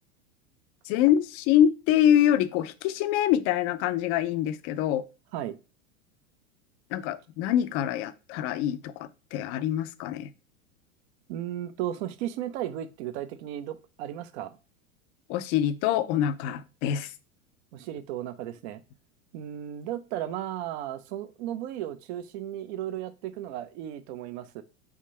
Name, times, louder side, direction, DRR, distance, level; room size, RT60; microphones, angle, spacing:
voice 1, 0.9-5.0 6.9-10.3 15.3-17.1, left 10 dB, 35° left, 0.4 m, -25 dB
voice 2, 11.3-14.6 17.7-18.8 19.3-24.6, right 12 dB, 50° right, 0.6 m, -35 dB
3.6 x 2.6 x 4.2 m
hypercardioid pair, 105°, 42 cm